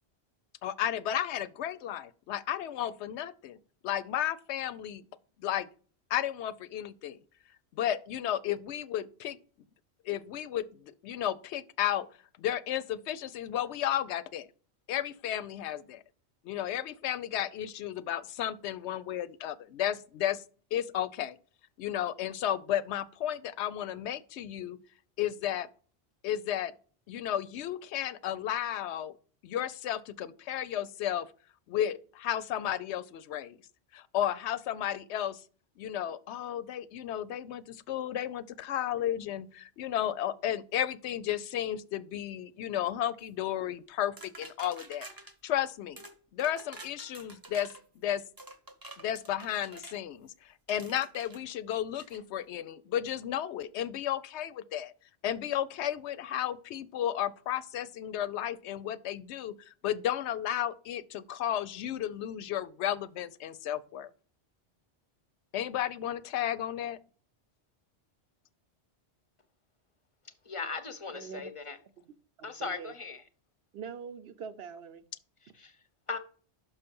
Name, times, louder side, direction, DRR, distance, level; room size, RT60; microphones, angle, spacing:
voice 1, 0.6-3.6 3.8-5.0 5.4-5.7 6.1-7.2 7.8-9.4 10.0-12.1 12.4-14.5 14.9-16.0 16.4-20.4 20.7-21.4 21.8-24.8 25.2-25.7 26.2-26.7 27.1-29.2 29.4-31.3 31.7-33.6 33.9-35.4 35.8-45.1 45.4-46.0 46.3-47.7 48.0-48.2 49.0-54.9 55.2-64.1 65.5-67.0, left 11 dB, 90° left, 0.9 m, -33 dB
sound 1, 44.2-45.3 46.0-46.1 46.4-47.8 48.4-50.0 50.7-51.4 52.0-52.2, right 2 dB, 20° right, 0.7 m, -48 dB
voice 2, 70.5-71.8 72.4-73.2 75.6-75.7 76.1-76.2, left 4 dB, 35° left, 0.6 m, -38 dB
voice 3, 71.1-71.5 72.0-72.1 72.4-72.9 73.7-75.0, right 6 dB, 70° right, 0.9 m, -43 dB
6.0 x 5.6 x 5.2 m
omnidirectional pair, 1.1 m